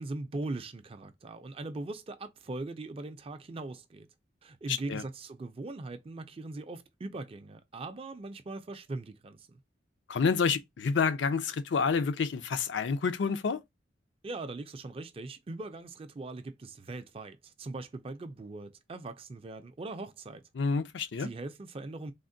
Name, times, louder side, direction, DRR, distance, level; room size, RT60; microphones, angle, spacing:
voice 1, 0.0-4.1 4.4-9.6 14.2-20.4 21.0-22.1, right 2 dB, 30° right, 0.4 m, -40 dB
voice 2, 4.7-5.0 10.1-13.6 20.6-21.3, left 5 dB, 75° left, 0.4 m, -28 dB
3.5 x 2.1 x 2.5 m
head